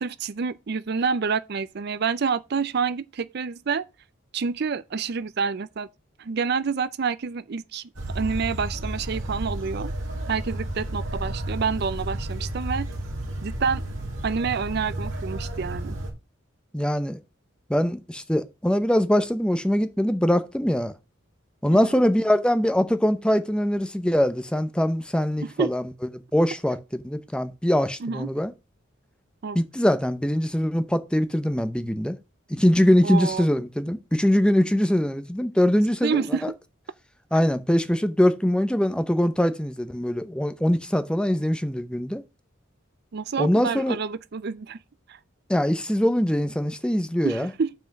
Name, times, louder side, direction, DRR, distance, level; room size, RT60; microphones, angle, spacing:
voice 1, 0.0-3.8 4.3-5.9 6.2-7.8 8.1-9.9 10.3-12.9 13.4-13.9 14.2-16.0 21.7-22.0 25.4-25.7 28.0-28.3 29.4-29.6 33.0-33.5 36.0-36.4 37.3-37.4 43.1-44.8 45.1-45.2 47.2-47.7, right 5 dB, 55° right, 0.5 m, -28 dB
sound 1, 7.9-16.1, right 1 dB, 75° right, 2.8 m, -32 dB
voice 2, 16.7-17.2 17.7-20.9 21.6-25.8 26.3-28.5 29.5-32.2 32.5-36.5 37.3-42.2 43.4-44.0 45.5-47.5, equal, 5° left, 0.7 m, -22 dB
5.8 x 5.0 x 6.5 m
head